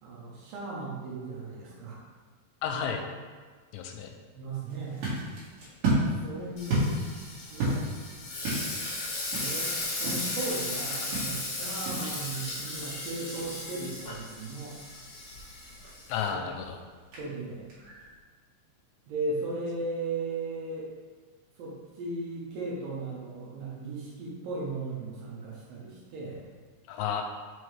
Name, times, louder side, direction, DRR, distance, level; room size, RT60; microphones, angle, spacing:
voice 1, 0.0-2.0 4.3-5.1 6.0-6.9 7.5-7.8 9.2-14.8 16.3-16.5 17.2-17.7 19.1-20.9 21.6-26.4, right 3 dB, 75° right, -5 dB, 2.1 m, -36 dB
voice 2, 2.6-3.0 3.7-4.1 16.1-16.8 26.9-27.2, left 7 dB, 85° left, 4 dB, 2.6 m, -32 dB
sound 1, 4.7-18.2, right 1 dB, 55° right, 2.8 m, -35 dB
Frying (food), 6.6-16.3, left 2 dB, 65° left, 1.5 m, -36 dB
6.3 x 4.6 x 3.3 m, 1.5 s
omnidirectional pair, 5.2 m